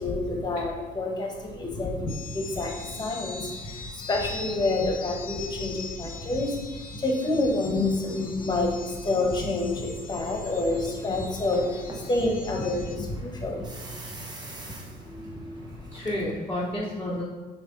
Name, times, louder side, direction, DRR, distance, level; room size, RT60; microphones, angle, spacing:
voice 1, 0.0-13.7 15.1-15.3, left 2 dB, 25° left, 0 dB, 1.5 m, -28 dB
sound 1, 2.1-13.0, left 4 dB, 55° left, 0.8 m, -42 dB
sound 2, 10.5-16.3, right 1 dB, 25° right, 1.3 m, -43 dB
voice 2, 15.9-17.2, left 1 dB, 10° left, -9 dB, 1.4 m, -31 dB
6.9 x 3.4 x 5.5 m, 1.3 s
cardioid pair, 110°, 17 cm